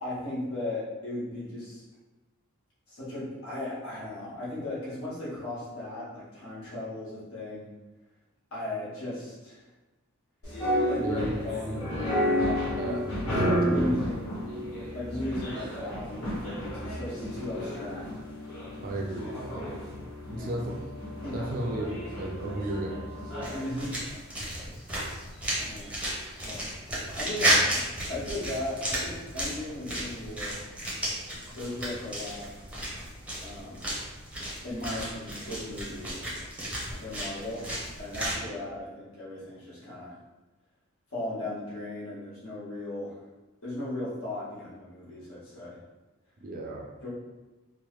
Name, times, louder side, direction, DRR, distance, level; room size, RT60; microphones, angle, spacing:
voice 1, 0.0-1.8 2.9-7.7 8.5-9.6 10.9-13.0 13.2-14.3 14.9-18.0 20.3-20.6 21.2-21.4 23.5-23.9 25.6-25.9 26.4-26.6 27.1-30.5 31.5-32.5 33.4-33.9 34.6-36.3 37.0-37.7 38.0-40.1 41.1-43.2 43.6-45.8 47.0-47.1, left 1 dB, 70° left, -8 dB, 1.3 m, -36 dB
sound 1, 10.4-23.7, equal, 90° left, 1.3 m, -32 dB
voice 2, 12.7-13.1 13.4-14.0 18.8-19.7 20.3-20.8 21.3-23.1 24.6-24.8 46.4-46.9, right 1 dB, 40° right, -1 dB, 0.5 m, -34 dB
sound 2, 23.4-38.4, right 1 dB, 5° right, 0.7 m, -33 dB
3.1 x 2.2 x 3.1 m, 1.1 s
head